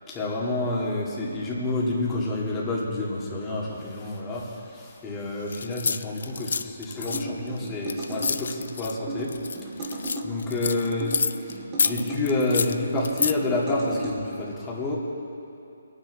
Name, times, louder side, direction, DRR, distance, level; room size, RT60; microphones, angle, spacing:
voice 1, 0.1-9.3 9.8-15.0, left 2 dB, 15° left, -4 dB, 2.4 m, -29 dB
sound 1, 5.5-8.9 9.3-11.5 11.8-13.3, left 5 dB, 70° left, 0.4 m, -28 dB
sound 2, 7.1-8.4 9.1-10.3 11.0-12.2 12.9-14.1, right 2 dB, 25° right, 2.7 m, -35 dB
22.5 x 9.6 x 4.2 m, 2.8 s
hypercardioid pair, 155°, 0 cm